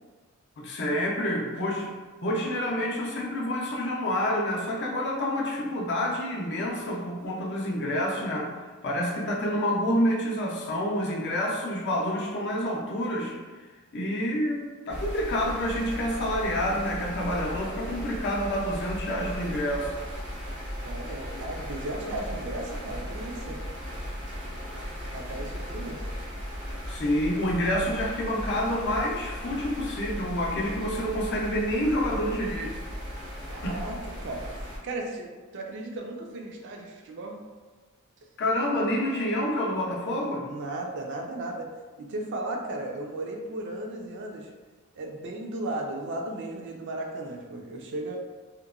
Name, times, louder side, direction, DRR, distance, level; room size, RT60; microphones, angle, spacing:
voice 1, 0.6-1.9 2.2-8.5 8.8-13.4 13.9-20.0 26.9-32.8 33.6-33.8 38.4-40.5, equal, 50° left, -2 dB, 0.5 m, -28 dB
sound 1, 14.9-34.8, equal, 90° right, 1.0 m, -37 dB
voice 2, 20.8-23.6 25.1-26.0 33.5-37.4 40.4-41.7 42.0-44.5 44.9-48.2, right 2 dB, 55° right, 1 dB, 0.4 m, -35 dB
2.8 x 2.1 x 2.4 m, 1.3 s
head